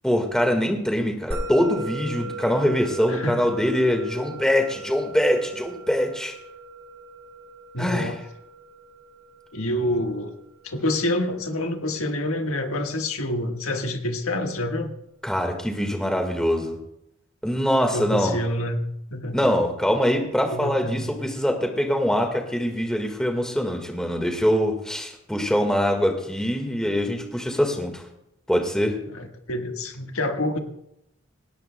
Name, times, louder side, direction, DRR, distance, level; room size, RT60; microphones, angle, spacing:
voice 1, 0.0-6.3 7.8-8.1 15.2-16.8 17.4-18.4 19.3-28.0 28.5-29.0, equal, 5° left, 3 dB, 1.6 m, -23 dB
Musical instrument, 1.3-11.9, right 2 dB, 85° right, 3.3 m, -38 dB
voice 2, 3.1-3.5 7.7-8.2 9.5-10.3 10.6-14.9 17.9-18.8 19.1-19.5 20.2-21.1 29.1-30.6, left 1 dB, 85° left, 4 dB, 1.5 m, -27 dB
18.5 x 17.0 x 2.2 m, 0.82 s
head